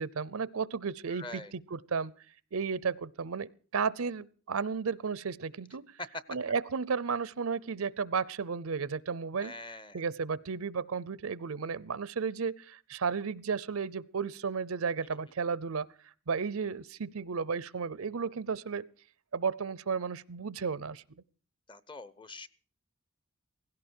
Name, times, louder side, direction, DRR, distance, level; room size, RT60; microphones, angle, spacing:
voice 1, 0.0-2.1 2.5-5.9 6.3-9.5 9.9-15.9 16.3-18.9 19.3-21.0, right 5 dB, 80° right, 0.6 m, -33 dB
voice 2, 1.1-1.5 9.4-10.0 21.7-22.5, left 2 dB, 25° left, 0.8 m, -45 dB
17.0 x 16.5 x 4.5 m
head